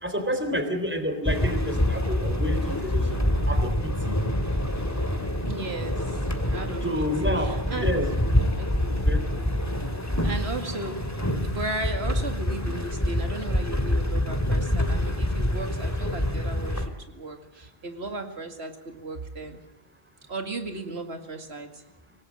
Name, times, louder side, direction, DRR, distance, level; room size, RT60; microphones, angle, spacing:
voice 1, 0.0-3.2 3.5-4.1 6.8-8.1 8.9-9.2, equal, 10° right, 6 dB, 3.7 m, -29 dB
sound 1, 1.2-16.9, left 1 dB, 15° left, 2.4 m, -26 dB
voice 2, 5.4-7.9 8.6-9.0 9.7-9.8 10.1-11.1 11.4-19.6 20.3-21.8, right 2 dB, 85° right, 6 dB, 2.5 m, -36 dB
26.0 x 19.0 x 7.7 m, 0.75 s
omnidirectional pair, 1.0 m